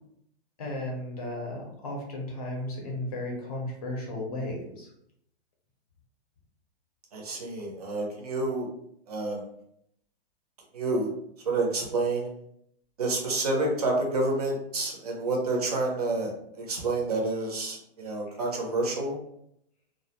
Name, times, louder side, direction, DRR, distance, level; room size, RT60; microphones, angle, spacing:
voice 1, 0.6-4.9, left 1 dB, 35° left, -1 dB, 0.6 m, -34 dB
voice 2, 7.1-8.7 9.1-9.4 10.7-11.1 11.5-12.3 13.0-19.2, right 2 dB, 35° right, 0 dB, 0.5 m, -29 dB
2.3 x 2.1 x 2.8 m, 0.74 s
hypercardioid pair, 170°, 33 cm